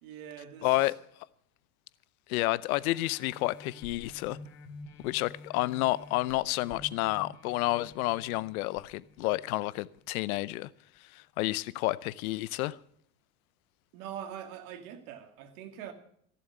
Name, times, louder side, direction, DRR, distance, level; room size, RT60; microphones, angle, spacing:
voice 1, 0.0-0.9 13.9-15.9, right 9 dB, 75° right, 2.2 m, -43 dB
voice 2, 0.6-1.0 2.3-4.4 5.0-10.7 11.1-12.8, left 18 dB, 75° left, 0.7 m, -30 dB
sound 1, 2.8-10.0 10.5-10.6, left 3 dB, 55° left, 2.8 m, -50 dB
15.5 x 7.1 x 9.5 m
hypercardioid pair, 85°, 43 cm